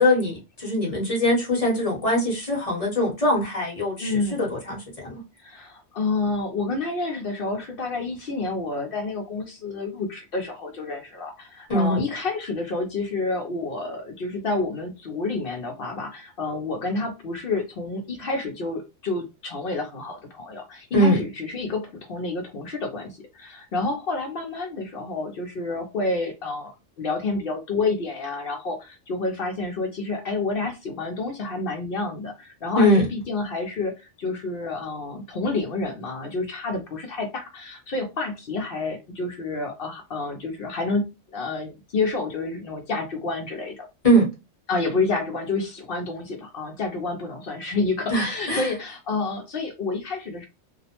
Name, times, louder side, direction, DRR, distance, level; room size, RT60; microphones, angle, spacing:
voice 1, 0.0-5.2 11.7-12.0 20.9-21.2 32.8-33.1 44.0-44.3 48.1-48.7, equal, 30° left, 1.0 m, -22 dB
voice 2, 4.0-4.4 5.4-43.9 44.7-50.5, left 3 dB, 60° left, 0.6 m, -29 dB
2.4 x 2.0 x 2.8 m
omnidirectional pair, 1.3 m